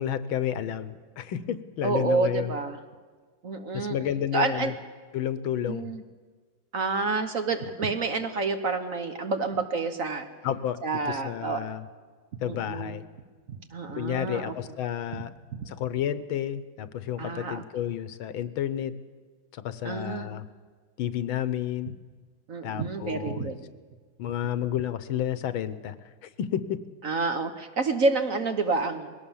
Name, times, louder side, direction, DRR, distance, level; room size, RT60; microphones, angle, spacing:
voice 1, 0.0-2.5 3.7-4.7 5.1-5.9 10.4-10.8 11.1-11.8 12.4-13.0 14.0-15.3 15.7-18.9 19.5-20.4 21.0-21.9 22.6-23.5 24.2-25.9 26.2-26.8, left 10 dB, 75° left, 14 dB, 1.7 m, -31 dB
voice 2, 1.8-2.8 3.4-4.0 4.3-4.7 5.7-6.0 6.7-10.3 10.8-11.6 12.4-13.0 13.5-14.5 15.1-15.2 15.5-15.7 17.2-17.6 19.8-20.3 22.5-23.6 27.0-29.1, right 3 dB, 45° right, 7 dB, 1.3 m, -28 dB
21.0 x 17.5 x 7.2 m, 1.5 s
omnidirectional pair, 2.2 m